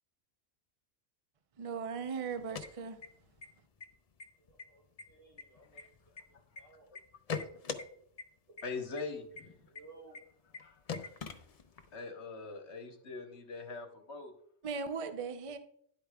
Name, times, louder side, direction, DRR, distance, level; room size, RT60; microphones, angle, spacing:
voice 1, 1.6-3.0 14.6-15.6, right 5 dB, 40° right, 0.5 m, -38 dB
sound 1, 2.3-3.5 3.8-3.9 4.2-4.6 5.0-6.6 7.0-7.8 8.2-8.3 8.6-8.7 9.0-9.1 9.4-9.5 9.8-9.9 10.1-10.2 10.5-10.6 10.9-11.9, left 5 dB, 45° left, 0.5 m, -41 dB
voice 2, 4.4-5.8 6.6-6.9 9.7-10.2, right 3 dB, 85° right, 2.5 m, -57 dB
voice 3, 8.6-9.7 10.6-11.0 11.9-14.3, left 4 dB, 65° left, 1.3 m, -42 dB
10.5 x 8.4 x 2.3 m
omnidirectional pair, 1.2 m